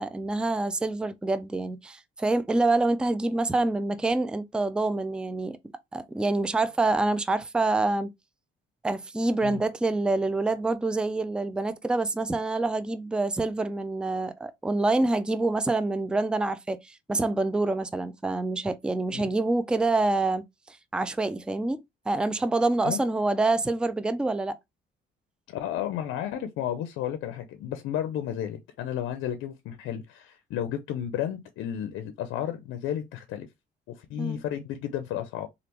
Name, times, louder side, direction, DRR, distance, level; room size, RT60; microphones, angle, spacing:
voice 1, 0.0-5.6 5.9-8.1 8.8-24.6 34.2-34.4, right 2 dB, 5° right, 0.3 m, -26 dB
voice 2, 25.5-33.5 33.9-35.5, left 10 dB, 85° left, 0.5 m, -32 dB
3.3 x 2.4 x 2.9 m
cardioid pair, 90°, 20 cm